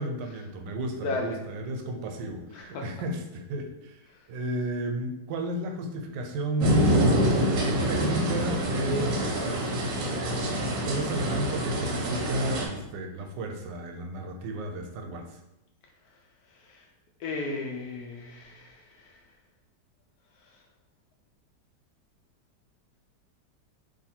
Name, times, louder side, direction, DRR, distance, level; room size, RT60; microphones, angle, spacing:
voice 1, 0.0-4.0 4.3-6.9 7.9-9.8 10.8-15.4, right 1 dB, 90° right, 4 dB, 1.3 m, -33 dB
voice 2, 1.0-1.4 2.5-2.8 10.5-11.3 16.5-16.8 17.2-19.2, left 3 dB, 70° left, 1 dB, 0.9 m, -36 dB
sound 1, 6.6-12.7, equal, 60° right, 0.9 m, -26 dB
2.8 x 2.6 x 4.2 m, 0.92 s
omnidirectional pair, 1.9 m